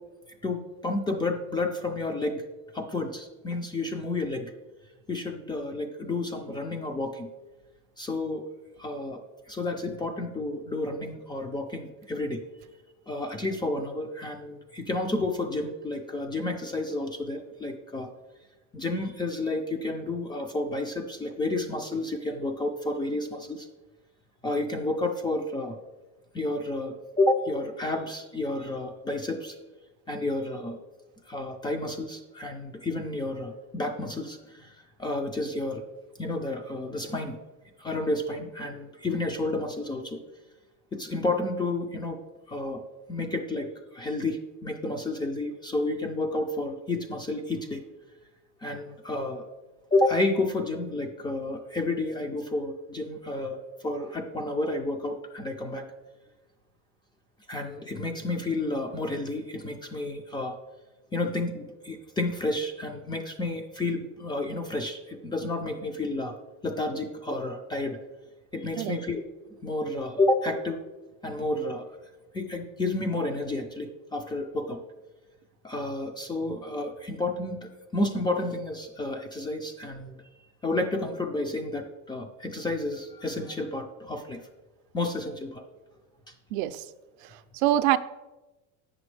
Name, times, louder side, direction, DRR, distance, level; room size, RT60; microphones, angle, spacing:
voice 1, 0.4-2.4 2.7-4.5 5.1-7.3 8.0-8.4 8.8-9.2 9.5-12.4 13.1-18.1 18.7-23.7 24.4-25.8 26.3-29.6 30.1-30.8 31.2-35.8 36.2-37.4 37.8-40.2 40.9-42.2 42.5-42.8 43.1-47.8 48.6-49.4 49.9-55.9 57.5-60.6 61.1-66.4 66.6-68.0 68.5-69.2 69.6-70.8 71.2-71.9 72.3-74.8 75.6-80.2 80.6-84.4 84.9-85.6, left 2 dB, 15° left, 5 dB, 0.3 m, -30 dB
voice 2, 86.5-86.8 87.3-88.0, right 14 dB, 70° right, 12 dB, 0.5 m, -25 dB
8.2 x 6.1 x 3.2 m, 1.1 s
cardioid pair, 140°, 35 cm